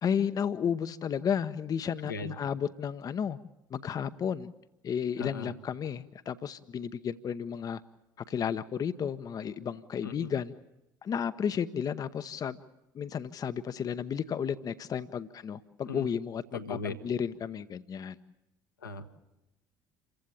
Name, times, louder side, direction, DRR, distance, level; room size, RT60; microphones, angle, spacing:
voice 1, 0.0-3.4 3.7-4.5 4.8-7.8 8.3-10.5 11.0-12.6 12.9-18.2, left 7 dB, 35° left, 13 dB, 0.8 m, -33 dB
voice 2, 5.2-5.5 10.0-10.3 15.9-16.1 16.5-16.9 18.8-19.0, left 4 dB, 80° left, 6 dB, 1.4 m, -37 dB
28.0 x 15.5 x 8.6 m, 0.94 s
figure-of-eight pair, 55°, 10 cm